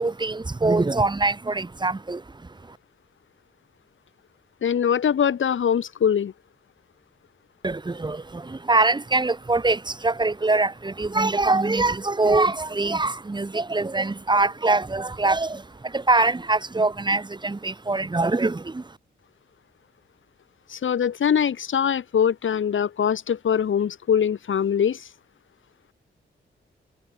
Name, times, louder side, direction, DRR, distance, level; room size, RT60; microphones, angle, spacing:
voice 1, 0.0-2.8 7.6-19.0, right 3 dB, 20° right, 2.3 m, -23 dB
voice 2, 4.6-6.3 20.7-25.0, left 8 dB, 75° left, 6.7 m, -22 dB
wide cardioid pair, 120°, 20 cm